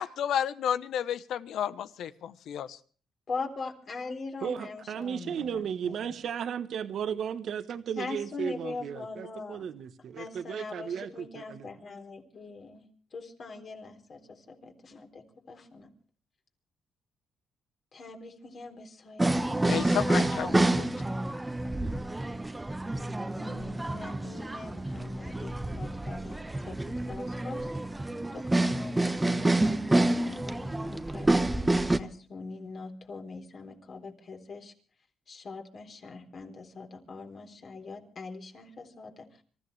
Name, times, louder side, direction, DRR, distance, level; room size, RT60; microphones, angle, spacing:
voice 1, 0.0-2.8 19.6-20.9, left 9 dB, 75° left, 1.1 m, -32 dB
voice 2, 3.3-6.2 8.0-9.7 10.2-12.8 13.1-15.9 17.9-20.6 23.3-27.7 28.3-31.3 32.0-34.7 35.3-39.3, left 3 dB, 50° left, 3.8 m, -42 dB
voice 3, 4.4-11.7, right 8 dB, 65° right, 1.3 m, -35 dB
sound 1, 19.2-32.0, right 2 dB, 15° right, 1.1 m, -28 dB
26.0 x 14.5 x 3.4 m
cardioid pair, 90°, 0 cm